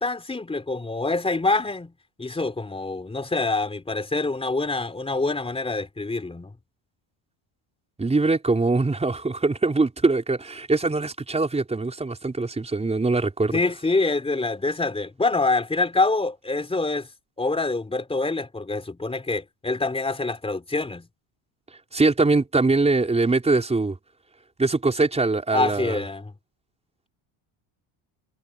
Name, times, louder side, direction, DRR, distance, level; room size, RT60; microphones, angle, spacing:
voice 1, 0.0-1.9 2.2-6.5 13.5-17.1 17.4-21.1 25.5-26.4, left 3 dB, 10° left, 3.7 m, -25 dB
voice 2, 8.0-13.6 21.9-24.0 24.6-26.0, right 3 dB, 15° right, 4.6 m, -22 dB
cardioid pair, 160°, 49 cm